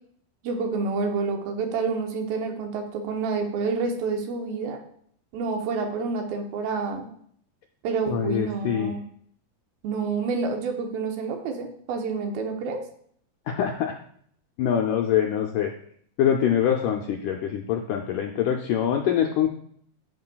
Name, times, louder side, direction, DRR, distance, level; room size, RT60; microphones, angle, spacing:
voice 1, 0.4-4.8 5.3-7.1 7.8-9.0 9.8-12.8, right 4 dB, 80° right, 3 dB, 2.7 m, -28 dB
voice 2, 8.1-8.9 13.5-14.0 14.6-15.7 16.2-19.5, left 9 dB, 85° left, 2 dB, 1.8 m, -24 dB
13.0 x 5.5 x 2.3 m, 0.63 s
omnidirectional pair, 4.3 m